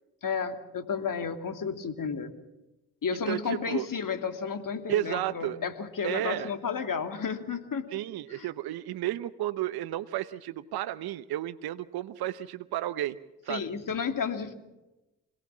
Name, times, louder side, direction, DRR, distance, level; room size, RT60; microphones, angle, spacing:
voice 1, 0.2-2.3 3.0-7.9 8.3-8.5 13.5-14.5, left 6 dB, 55° left, 7 dB, 2.9 m, -32 dB
voice 2, 3.3-3.9 4.9-5.6 6.0-6.5 7.9-13.2 13.4-13.6, right 13 dB, 70° right, 12 dB, 0.9 m, -32 dB
26.5 x 18.0 x 7.4 m, 1.0 s
hypercardioid pair, 40°, 38 cm